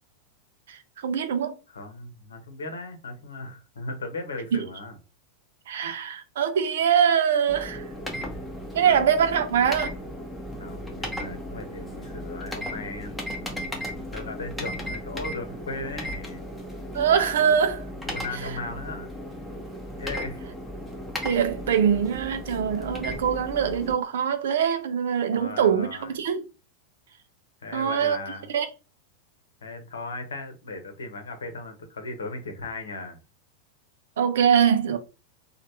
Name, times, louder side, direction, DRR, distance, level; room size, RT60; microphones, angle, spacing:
voice 1, 0.7-1.5 5.7-7.8 8.7-9.9 16.9-17.9 18.4-18.5 21.2-26.4 27.7-28.2 28.5-28.7 34.2-35.0, right 8 dB, 60° right, 0.5 m, -23 dB
voice 2, 1.7-5.0 8.2-8.4 8.8-9.0 10.6-16.4 18.1-19.1 20.0-20.4 25.3-26.2 27.6-28.5 29.6-33.2, left 2 dB, 70° left, 0.8 m, -37 dB
sound 1, 7.5-23.9, equal, 5° left, 0.9 m, -36 dB
3.1 x 2.4 x 2.8 m
figure-of-eight pair, 90°, 0 cm